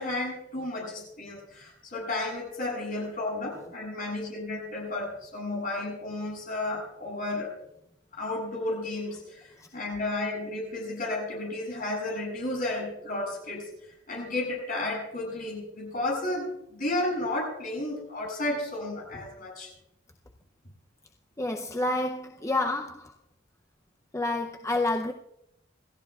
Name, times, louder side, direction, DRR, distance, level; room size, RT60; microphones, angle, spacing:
voice 1, 0.0-7.5 8.1-13.7 14.1-19.7, left 2 dB, 45° left, 7.7 m, -32 dB
voice 2, 21.4-23.1 24.1-25.1, left 2 dB, 15° left, 0.6 m, -29 dB
27.5 x 14.5 x 2.4 m
head